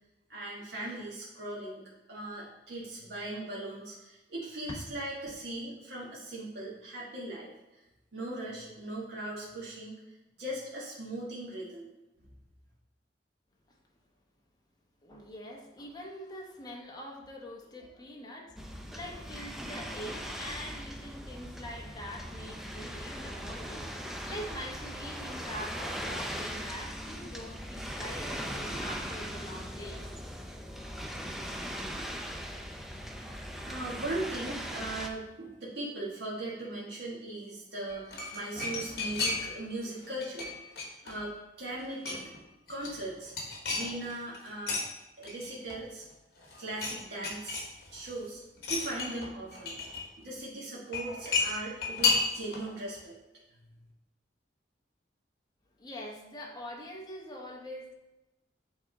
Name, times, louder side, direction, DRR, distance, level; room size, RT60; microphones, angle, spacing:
voice 1, 0.3-1.8 2.1-7.5 8.1-10.0 10.4-11.9 32.9-33.1 33.6-41.3 41.6-42.2 42.7-43.3 43.7-44.8 45.2-46.1 46.6-48.4 48.7-49.8 50.2-53.1, right 2 dB, 75° right, -6 dB, 1.5 m, -39 dB
voice 2, 15.0-30.3 55.8-57.9, equal, 25° left, -1 dB, 1.0 m, -44 dB
sound 1, 18.6-35.1, equal, ahead, 0.5 m, -39 dB
sound 2, 37.9-39.7 40.0-41.4 41.7-42.4 42.7-44.8 45.2-46.1 46.4-47.0 47.2-48.1 48.6-50.1 50.9-52.7 53.0-53.1, left 4 dB, 60° left, 1.3 m, -33 dB
8.2 x 3.6 x 3.9 m, 1.0 s
head